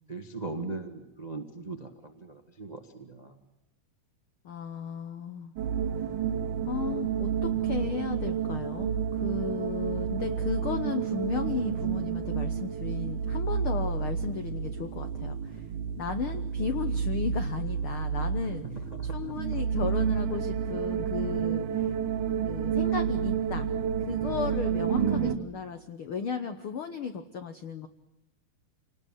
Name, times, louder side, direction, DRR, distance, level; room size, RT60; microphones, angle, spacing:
voice 1, 0.1-3.4 16.6-16.7 18.9-19.3 24.9-25.4, right 4 dB, 35° right, 6 dB, 0.6 m, -36 dB
voice 2, 4.4-5.6 6.0-6.1 6.6-15.7 16.0-18.7 19.1-21.9 22.4-23.7 24.0-27.9, left 6 dB, 70° left, 9 dB, 1.2 m, -35 dB
sound 1, 5.6-25.3, right 7 dB, 70° right, 2.4 m, -30 dB
27.0 x 19.0 x 9.1 m, 0.89 s
omnidirectional pair, 3.8 m